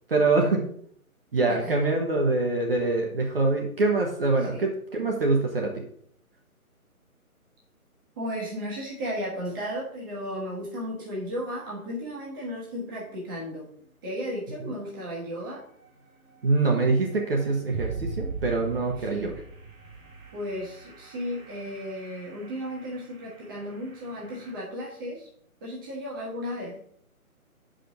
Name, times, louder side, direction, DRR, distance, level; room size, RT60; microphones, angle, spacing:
voice 1, 0.1-0.6 1.3-5.8 16.4-19.3, right 3 dB, 40° right, 1 dB, 1.2 m, -24 dB
voice 2, 8.2-13.7 14.0-15.6 19.0-19.4 20.3-25.3 25.6-26.8, equal, 15° right, -5 dB, 1.3 m, -34 dB
sound 1, 12.9-13.0 13.4-13.5 15.4-15.5 15.8-24.5, right 4 dB, 60° right, 2.2 m, -41 dB
6.0 x 5.1 x 5.2 m, 0.63 s
figure-of-eight pair, 160°, 44 cm